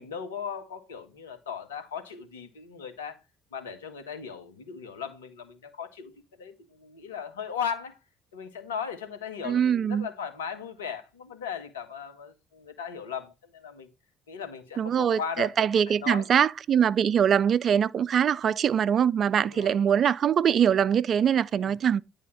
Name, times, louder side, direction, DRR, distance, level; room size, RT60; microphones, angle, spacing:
voice 1, 0.0-3.2 3.5-8.0 8.3-13.9 14.3-15.5 15.9-16.3 19.4-19.8 21.5-21.7, left 7 dB, 85° left, 1.2 m, -37 dB
voice 2, 9.4-10.1 14.8-22.0, right 8 dB, 50° right, 0.4 m, -23 dB
9.9 x 3.5 x 5.8 m
hypercardioid pair, 50°, 0 cm